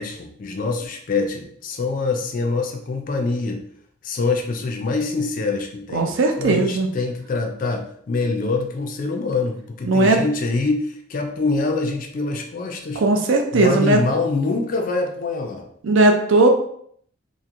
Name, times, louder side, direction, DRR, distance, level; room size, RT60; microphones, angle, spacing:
voice 1, 0.0-3.6 4.0-6.1 6.4-13.0 13.5-15.7, left 3 dB, 40° left, 3 dB, 0.3 m, -25 dB
voice 2, 5.9-6.9 9.8-10.2 13.0-14.0 15.8-16.5, right 2 dB, 65° right, 3 dB, 0.5 m, -17 dB
2.9 x 2.5 x 2.5 m, 0.64 s
head